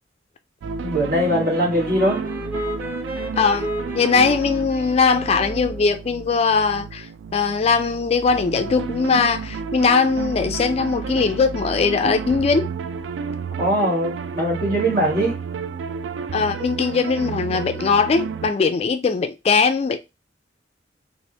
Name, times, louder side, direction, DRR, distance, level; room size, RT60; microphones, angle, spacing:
sound 1, 0.6-18.5, right 5 dB, 75° right, 0.3 m, -31 dB
voice 1, 0.8-2.2 13.6-15.3, equal, 55° right, 1.6 m, -21 dB
Wind instrument woodwind instrument, 1.2-5.9, equal, 10° right, 0.8 m, -33 dB
voice 2, 3.4-3.7 3.9-12.7 16.3-20.0, left 5 dB, 35° left, 0.3 m, -20 dB
3.3 x 2.5 x 2.7 m
head